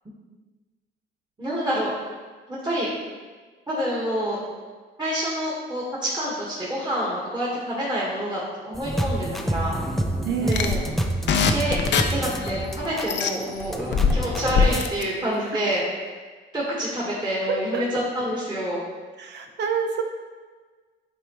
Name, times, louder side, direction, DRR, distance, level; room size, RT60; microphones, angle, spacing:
voice 1, 1.4-1.9 2.5-2.9 3.7-4.4 5.0-9.8 10.4-10.8 11.5-11.8 12.1-15.8 16.5-18.8, equal, 20° right, -7 dB, 1.9 m, -27 dB
sound 1, 8.7-14.9, right 1 dB, ahead, 0.6 m, -28 dB
voice 2, 10.2-10.9 15.5-15.6 17.5-17.8 19.2-20.0, right 6 dB, 60° right, 4 dB, 0.6 m, -27 dB
sound 2, 10.5-13.3 13.9-15.0, left 6 dB, 65° left, 0.6 m, -23 dB
8.5 x 4.4 x 3.2 m, 1.4 s
cardioid pair, 90°, 20 cm